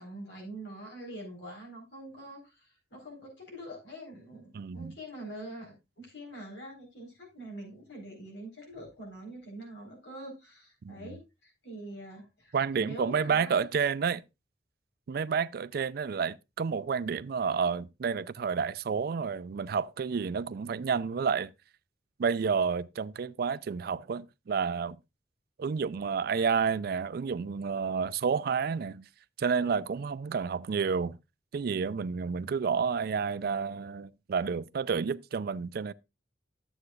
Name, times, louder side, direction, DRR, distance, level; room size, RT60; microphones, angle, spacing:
voice 1, 0.0-13.7, right 1 dB, 90° left, 4.1 m, -45 dB
voice 2, 4.5-4.9 10.8-11.1 12.5-14.2 15.1-21.5 22.2-25.0 25.6-29.0 29.4-31.2 31.5-35.9, right 6 dB, 60° right, 0.4 m, -30 dB
11.5 x 8.0 x 2.4 m
head